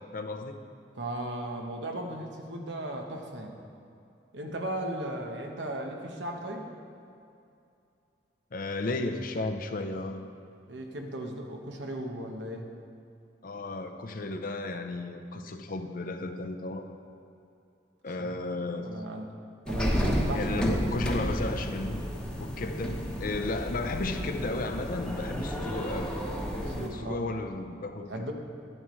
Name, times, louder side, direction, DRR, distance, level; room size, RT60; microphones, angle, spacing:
voice 1, 0.1-0.6 8.5-10.3 13.4-16.9 18.0-19.0 19.8-19.9 20.3-22.0 22.4-26.2 26.9-28.3, left 2 dB, 50° left, 7 dB, 0.6 m, -34 dB
voice 2, 1.0-3.6 4.3-6.7 10.7-12.7 18.2-18.4 18.8-19.3 19.7-20.8 26.7-27.3 28.1-28.3, right 1 dB, 85° right, 2 dB, 1.1 m, -36 dB
sound 1, 19.7-26.9, equal, 5° left, 1.0 m, -31 dB
11.0 x 9.8 x 3.1 m, 2.6 s
head